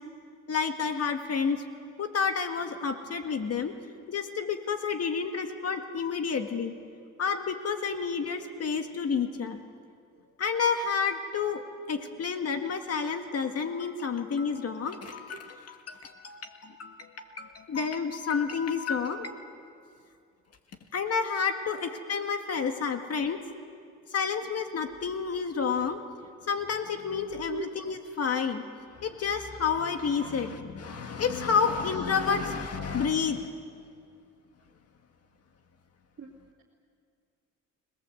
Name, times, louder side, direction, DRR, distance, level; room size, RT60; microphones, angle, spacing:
voice 1, 0.5-1.6 2.0-3.7 4.1-6.8 7.2-9.6 10.4-11.6 11.9-19.3 20.9-23.4 24.1-26.0 26.5-28.6 29.0-33.5, left 6 dB, 55° left, 6 dB, 1.8 m, -30 dB
voice 2, 21.7-21.8 25.6-25.7 27.5-27.6 30.2-30.3 36.2-36.3, right 7 dB, 45° right, -3 dB, 2.9 m, -37 dB
30.0 x 18.5 x 7.8 m, 2.3 s
cardioid pair, 90°, 30 cm